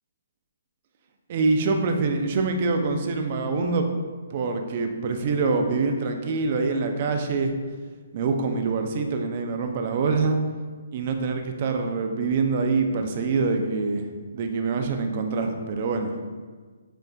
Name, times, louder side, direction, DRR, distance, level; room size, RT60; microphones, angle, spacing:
voice 1, 1.3-3.9 4.3-7.5 8.1-10.4 10.9-14.1 14.3-16.2, right 4 dB, 40° right, 5 dB, 0.4 m, -25 dB
6.7 x 2.4 x 2.3 m, 1.5 s
hypercardioid pair, 155°, 0 cm